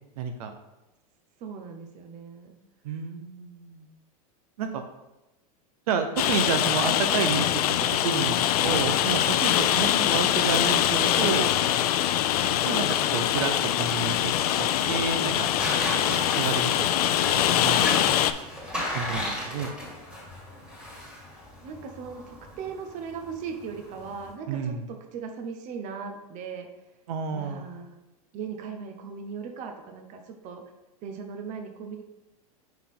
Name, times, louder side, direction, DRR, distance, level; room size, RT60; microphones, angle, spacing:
voice 1, 0.2-0.5 2.8-3.9 4.6-4.8 5.9-11.5 12.6-13.5 13.8-14.3 14.6-15.5 16.3-16.9 17.3-18.1 18.9-19.7 24.5-24.8 27.1-27.7, right 6 dB, 75° right, 6 dB, 0.7 m, -30 dB
voice 2, 1.4-2.6 9.9-10.3 21.6-26.7 27.3-28.0 28.3-30.6 31.0-32.0, right 6 dB, 40° right, 5 dB, 0.8 m, -38 dB
Rain, 6.2-18.3, left 11 dB, 85° left, 0.4 m, -23 dB
sound 1, 13.1-24.3, left 1 dB, 5° right, 2.0 m, -36 dB
5.8 x 4.6 x 3.6 m, 1.0 s
supercardioid pair, 125°, 19 cm